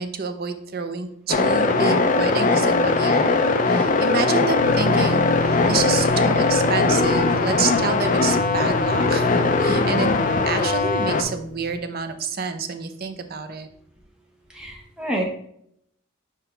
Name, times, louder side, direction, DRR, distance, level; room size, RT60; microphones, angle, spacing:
voice 1, 0.0-3.4 3.6-10.1 10.5-13.7, right 5 dB, 45° right, 8 dB, 0.6 m, -28 dB
sound 1, 1.3-11.2, left 3 dB, 40° left, 0.4 m, -20 dB
sound 2, 4.5-11.8, left 2 dB, 15° left, 2.5 m, -31 dB
voice 2, 14.5-15.2, right 1 dB, 5° right, -1 dB, 0.9 m, -28 dB
5.8 x 4.8 x 3.3 m, 0.70 s
head